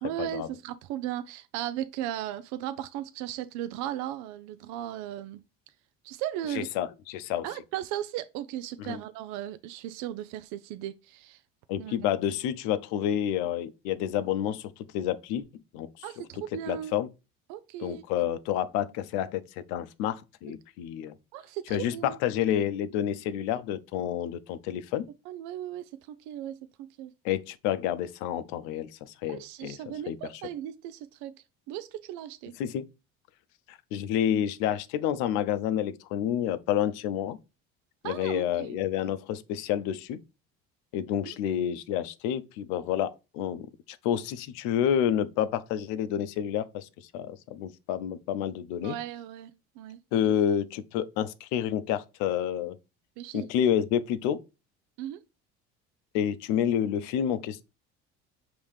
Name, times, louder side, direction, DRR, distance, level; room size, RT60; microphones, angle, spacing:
voice 1, 0.0-5.4 6.0-6.7 7.4-11.4 11.8-12.1 16.0-17.0 17.5-18.0 21.3-22.2 25.3-27.1 29.3-31.3 31.7-32.5 38.0-38.8 48.8-50.0 53.2-53.5 55.0-55.2, right 12 dB, 75° right, 0.5 m, -36 dB
voice 2, 6.5-7.5 8.8-9.0 11.7-15.4 15.7-15.9 16.7-17.1 17.8-21.1 21.7-25.1 27.2-29.8 30.1-30.4 32.6-32.9 33.7-37.4 38.0-40.2 40.9-46.9 47.1-49.0 50.1-52.8 53.3-54.4 56.1-57.6, left 10 dB, 80° left, 0.6 m, -29 dB
5.6 x 2.9 x 3.3 m
supercardioid pair, 105°, 29 cm